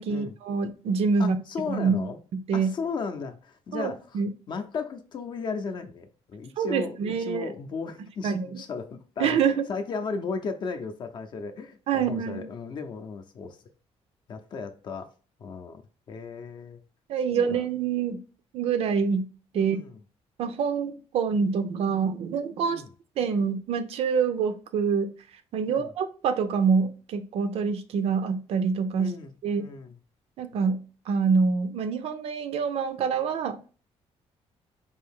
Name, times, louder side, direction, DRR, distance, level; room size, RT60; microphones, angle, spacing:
voice 1, 0.0-1.4 1.7-2.1 2.5-2.7 3.7-4.3 6.6-7.5 8.2-8.5 9.2-9.7 11.9-12.4 17.1-18.2 18.5-19.2 19.5-19.8 20.4-22.8 23.2-25.1 25.5-29.1 29.4-29.6 30.4-33.6, right 6 dB, 60° right, 0.5 m, -26 dB
voice 2, 1.2-2.2 2.5-4.2 4.5-13.6 14.3-15.1 15.4-15.8 16.1-16.8 17.3-17.7 19.5-20.0 22.7-22.9 25.7-25.9 28.9-30.0, left 5 dB, 45° left, 0.5 m, -35 dB
4.5 x 2.7 x 3.5 m
cardioid pair, 170°, 11 cm